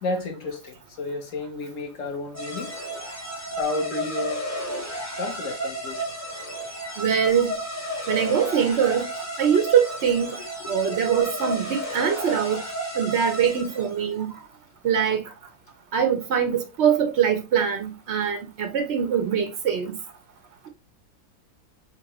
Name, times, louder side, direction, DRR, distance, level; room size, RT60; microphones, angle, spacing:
voice 1, 0.0-2.7 3.6-4.4 5.2-6.1 10.6-10.7, left 2 dB, 55° left, 1.0 m, -31 dB
sound 1, 2.3-14.0, equal, 20° left, 0.4 m, -32 dB
voice 2, 7.0-7.5 8.1-9.1 9.4-10.4 10.7-12.6 13.0-14.3 14.8-15.2 15.9-20.0, right 8 dB, 75° right, 0.6 m, -23 dB
5.6 x 2.6 x 2.9 m
omnidirectional pair, 2.0 m